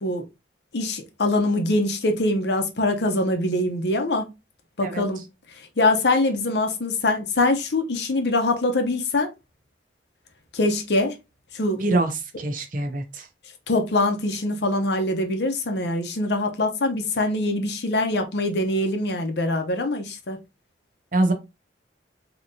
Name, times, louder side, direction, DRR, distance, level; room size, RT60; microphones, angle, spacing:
voice 1, 0.7-4.3 4.8-5.2 5.8-9.3 10.5-11.1 11.5-11.8 13.7-20.4, left 2 dB, 65° left, 0.7 m, -23 dB
voice 2, 11.8-12.1 12.4-13.3 21.1-21.3, right 2 dB, 45° right, 0.7 m, -23 dB
3.6 x 2.9 x 2.6 m
head